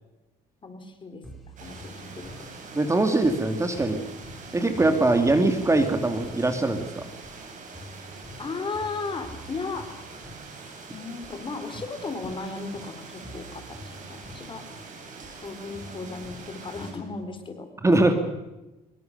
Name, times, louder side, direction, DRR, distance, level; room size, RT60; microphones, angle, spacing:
voice 1, 0.6-2.5 8.4-9.9 10.9-14.6 15.4-17.7, left 4 dB, 30° left, 7 dB, 4.0 m, -36 dB
sound 1, 1.2-17.3, equal, ahead, 6.1 m, -47 dB
sound 2, 1.6-16.9, right 4 dB, 50° right, 7.1 m, -44 dB
voice 2, 2.7-4.0 4.5-7.1 17.8-18.1, right 2 dB, 15° right, 7 dB, 2.5 m, -22 dB
24.5 x 22.5 x 6.8 m, 1.0 s
cardioid pair, 110°, 17 cm